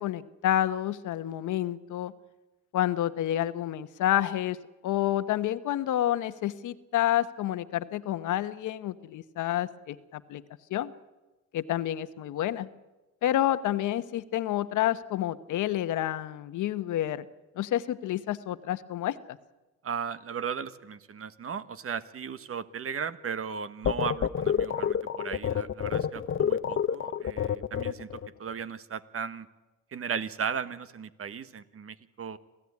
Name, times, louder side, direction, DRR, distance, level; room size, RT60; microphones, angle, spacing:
voice 1, 0.0-2.1 2.7-4.6 4.8-10.4 10.7-10.9 11.5-12.7 13.2-17.3 17.6-19.4, left 12 dB, 80° left, 13 dB, 1.1 m, -29 dB
voice 2, 19.8-29.5 29.9-32.4, right 7 dB, 50° right, 13 dB, 1.4 m, -36 dB
sound 1, 23.8-28.3, left 8 dB, 40° left, 0.8 m, -28 dB
27.0 x 15.5 x 9.6 m, 1.1 s
cardioid pair, 90°, 30 cm